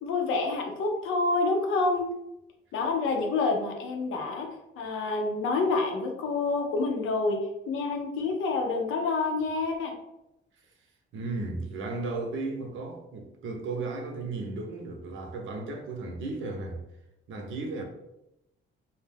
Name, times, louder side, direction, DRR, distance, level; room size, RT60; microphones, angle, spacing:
voice 1, 0.0-2.1 2.7-4.5 4.8-9.9, left 3 dB, 85° left, 0.6 m, -28 dB
voice 2, 11.1-16.8 17.3-17.8, right 3 dB, 75° right, 0.6 m, -35 dB
2.3 x 2.1 x 3.3 m
cardioid pair, 95°, 20 cm